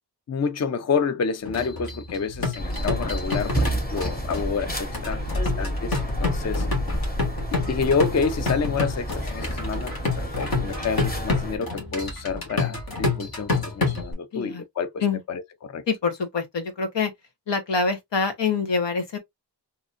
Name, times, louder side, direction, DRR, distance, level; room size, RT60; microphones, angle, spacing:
voice 1, 0.3-6.7 7.7-15.0 15.3-15.8, left 5 dB, 40° left, 0.5 m, -28 dB
sound 1, 1.4-14.1, left 3 dB, 55° left, 1.7 m, -29 dB
sound 2, 2.6-11.6, equal, 20° left, 1.6 m, -29 dB
voice 2, 14.3-14.6 15.0-15.2 15.9-17.1 17.5-19.2, left 5 dB, 85° left, 1.2 m, -25 dB
4.0 x 2.8 x 2.5 m
wide cardioid pair, 100°, 42 cm